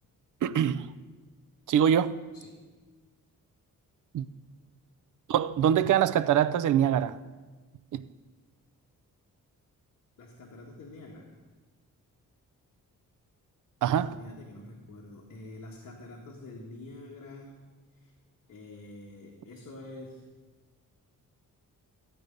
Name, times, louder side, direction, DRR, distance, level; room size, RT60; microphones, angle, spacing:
voice 1, 0.4-0.9 1.7-2.1 4.1-4.3 5.3-7.2 7.9-8.1 13.8-14.1, right 9 dB, 65° right, 0.5 m, -24 dB
voice 2, 10.2-11.3 14.0-17.6 18.0-18.1 18.5-20.3, left 2 dB, 55° left, 1.5 m, -46 dB
14.0 x 8.6 x 5.2 m
wide cardioid pair, 150°, 33 cm